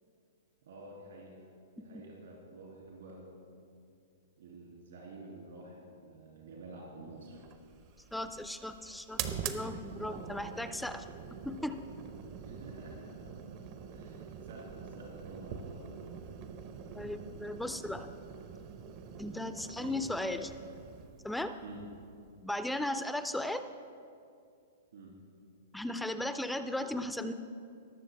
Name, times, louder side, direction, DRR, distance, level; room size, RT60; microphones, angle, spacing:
voice 1, 0.6-1.5 1.8-3.3 4.4-7.4 10.0-10.3 12.3-13.5 13.9-15.9 19.8-20.0 21.6-21.9 24.9-25.2, right 2 dB, 75° right, -2 dB, 2.5 m, -49 dB
sound 1, 7.3-22.6, right 7 dB, 45° right, 0.7 m, -45 dB
voice 2, 8.1-11.1 11.4-11.8 16.9-18.1 19.2-20.5 21.2-21.5 22.4-23.6 25.7-27.3, left 1 dB, 5° left, 9 dB, 0.4 m, -36 dB
19.0 x 6.8 x 3.4 m, 2.4 s
hypercardioid pair, 115°, 0 cm